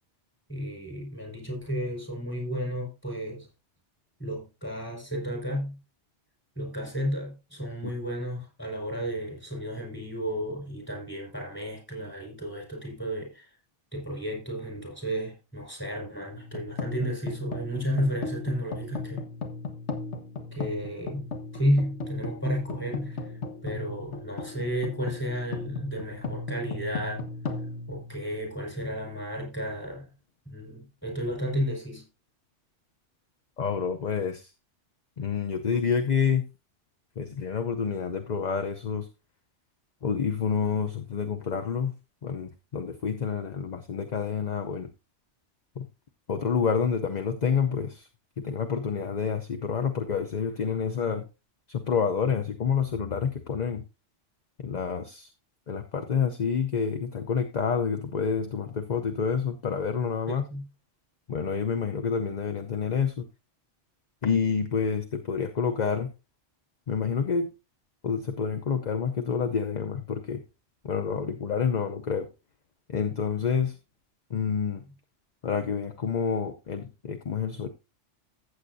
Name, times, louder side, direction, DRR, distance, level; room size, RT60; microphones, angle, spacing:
voice 1, 0.5-3.5 4.2-5.8 6.5-13.5 13.9-19.2 20.5-23.3 23.6-27.2 27.9-30.1 30.4-32.0 60.3-60.7, equal, 10° left, 4.9 m, -32 dB
sound 1, 16.3-28.8, left 3 dB, 70° left, 1.6 m, -37 dB
voice 2, 33.6-34.5 35.2-36.4 37.2-39.1 40.0-41.9 42.2-44.9 45.8-45.9 46.3-48.1 48.4-51.3 51.7-53.8 54.6-55.3 55.7-60.4 61.3-63.2 64.2-66.1 66.9-67.5 68.0-70.4 70.8-72.3 72.9-73.8 74.3-74.8 75.4-77.7, left 6 dB, 45° left, 0.7 m, -28 dB
14.5 x 8.0 x 2.7 m
omnidirectional pair, 1.2 m